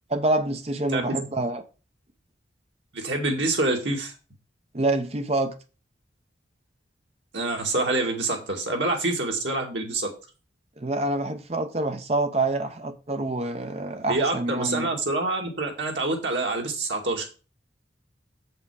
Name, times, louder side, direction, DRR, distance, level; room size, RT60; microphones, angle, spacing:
voice 1, 0.1-1.6 4.7-5.6 10.8-14.9, right 2 dB, 35° right, 0.8 m, -26 dB
voice 2, 2.9-4.1 7.3-10.1 14.1-17.3, right 2 dB, 80° right, 2.1 m, -26 dB
7.2 x 5.7 x 4.8 m
head